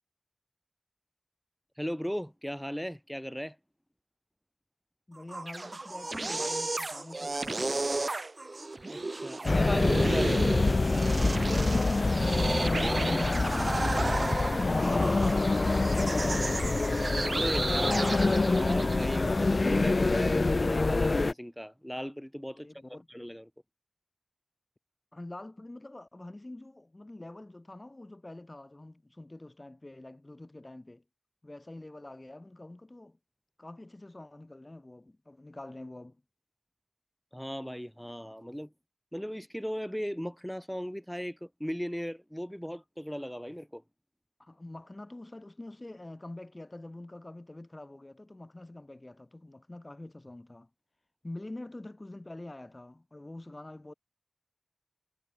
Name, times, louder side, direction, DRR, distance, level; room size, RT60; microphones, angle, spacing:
voice 1, 1.8-3.6 8.8-11.4 17.3-18.1 18.5-22.7 23.1-23.4 37.3-38.7 39.1-43.8, equal, 5° left, 4.5 m, -37 dB
voice 2, 5.1-7.9 12.7-18.2 22.5-23.1 25.1-31.0 31.4-33.2 33.6-36.2 44.4-50.7 51.2-53.9, left 2 dB, 45° left, 4.3 m, -46 dB
sound 1, 5.2-19.3, right 2 dB, 70° right, 1.4 m, -33 dB
sound 2, 9.5-21.3, left 3 dB, 85° left, 0.4 m, -26 dB
wide cardioid pair, 50°, 0 cm